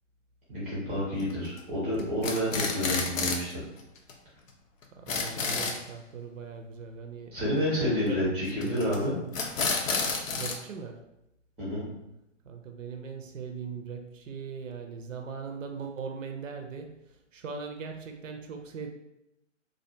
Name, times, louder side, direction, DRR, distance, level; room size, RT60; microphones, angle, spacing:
voice 1, 0.5-3.5 7.3-9.1 11.6-11.9, equal, 10° right, -9 dB, 0.6 m, -29 dB
sound 1, 1.2-1.6 2.0-3.5 3.8-3.9 4.1-4.2 4.5-4.6 4.8-5.8 8.6-9.0 9.3-10.6, left 4 dB, 85° left, 0.6 m, -30 dB
voice 2, 5.0-7.4 7.9-8.2 8.6-8.9 9.1-9.3 10.3-11.0 12.5-16.9 17.3-18.9, right 6 dB, 80° right, 5 dB, 0.5 m, -40 dB
2.4 x 2.1 x 2.6 m, 0.87 s
hypercardioid pair, 170°, 38 cm